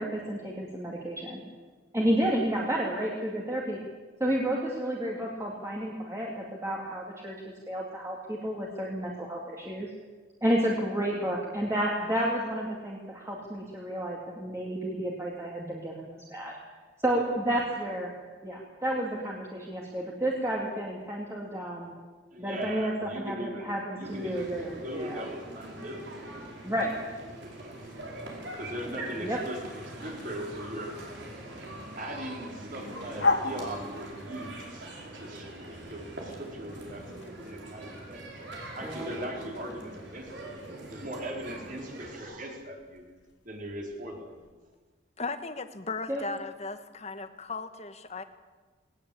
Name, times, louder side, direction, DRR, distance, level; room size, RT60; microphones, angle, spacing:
voice 1, 0.0-1.4 1.9-3.8 4.2-7.3 7.7-9.9 10.4-16.5 17.0-18.1 18.4-21.9 22.4-25.2 26.6-26.9 29.1-29.4 38.8-39.1 46.1-46.2, right 1 dB, 15° right, -3 dB, 2.7 m, -31 dB
voice 2, 22.3-23.7 24.0-26.3 27.4-28.0 28.5-31.0 31.5-31.7 32.0-35.5 35.9-37.1 37.4-38.3 38.7-40.5 40.9-43.1 43.4-44.3, equal, 45° right, 1 dB, 4.3 m, -39 dB
sound 1, 24.0-42.2, right 1 dB, 65° right, 5.2 m, -43 dB
sound 2, 27.7-44.5, left 3 dB, 75° left, 3.5 m, -40 dB
voice 3, 45.2-48.2, left 3 dB, 35° left, 9 dB, 1.4 m, -37 dB
19.5 x 19.5 x 8.6 m, 1.3 s
head